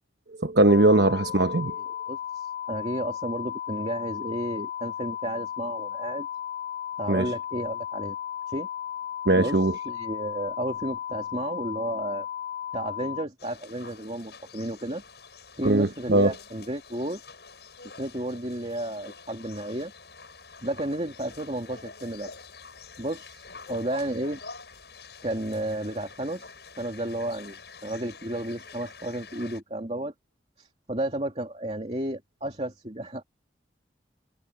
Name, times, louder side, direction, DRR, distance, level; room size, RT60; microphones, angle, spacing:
voice 1, 0.4-1.8 7.1-7.3 9.3-9.7 15.6-16.3, right 2 dB, 75° right, 1.1 m, -20 dB
sound 1, 0.7-13.2, left 10 dB, 45° left, 1.2 m, -35 dB
voice 2, 1.8-6.3 7.0-8.2 8.5-8.7 9.4-9.6 9.9-12.3 12.7-15.0 15.6-17.2 18.0-19.9 20.6-22.3 23.0-24.4 25.2-30.1 30.6-33.2, right 1 dB, 35° right, 2.7 m, -32 dB
sound 2, 13.4-29.6, left 4 dB, 70° left, 7.8 m, -47 dB
head